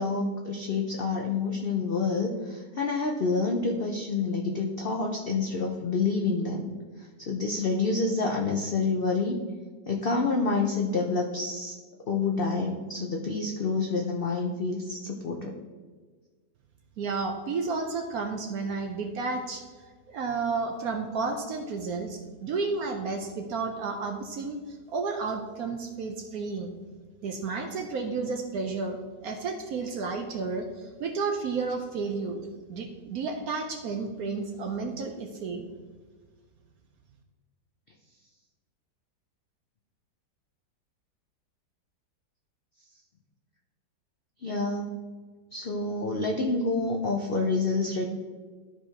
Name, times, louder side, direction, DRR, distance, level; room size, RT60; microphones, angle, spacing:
voice 1, 0.0-6.7 7.2-9.4 9.9-11.8 12.1-15.5 44.4-45.0 45.5-48.0, left 3 dB, 90° left, 1 dB, 0.5 m, -28 dB
voice 2, 17.0-19.6 20.1-26.7 27.2-32.4 32.7-35.6, right 4 dB, 65° right, 4 dB, 1.0 m, -32 dB
12.5 x 4.9 x 2.8 m, 1.4 s
omnidirectional pair, 1.9 m